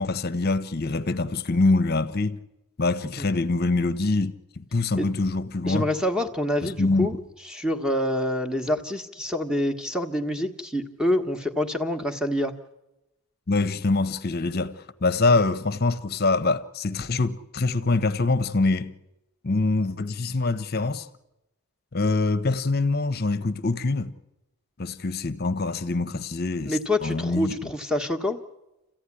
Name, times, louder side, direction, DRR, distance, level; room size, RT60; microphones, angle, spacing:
voice 1, 0.0-2.4 2.8-5.9 6.6-7.1 13.5-19.0 19.4-21.1 21.9-24.1 24.8-27.7, left 3 dB, 45° left, 0.9 m, -24 dB
voice 2, 5.7-7.2 7.4-12.5 26.6-28.4, left 1 dB, 5° right, 1.3 m, -26 dB
28.0 x 15.0 x 9.9 m
head